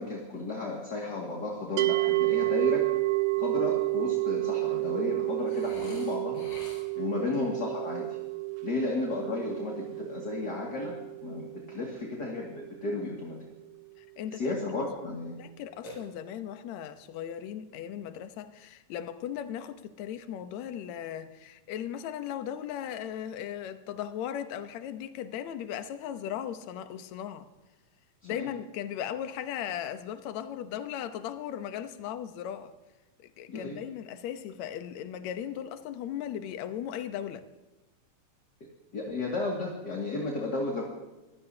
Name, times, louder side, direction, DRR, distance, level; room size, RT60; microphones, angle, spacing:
voice 1, 0.0-2.9 3.4-6.4 7.0-8.2 8.6-10.9 11.2-13.4 14.3-15.4 28.2-28.5 33.5-33.8 38.9-40.8, left 3 dB, 35° left, -1 dB, 2.3 m, -33 dB
sound 1, 1.8-12.9, right 24 dB, 90° right, 2.5 m, -30 dB
Burping eructation, 5.5-7.2 15.8-16.6, left 1 dB, 50° left, 6.4 m, -48 dB
voice 2, 14.0-14.5 15.0-27.5 28.2-32.7 33.2-37.5, left 10 dB, 65° left, 10 dB, 1.9 m, -37 dB
23.5 x 16.0 x 2.8 m, 1.1 s
omnidirectional pair, 4.1 m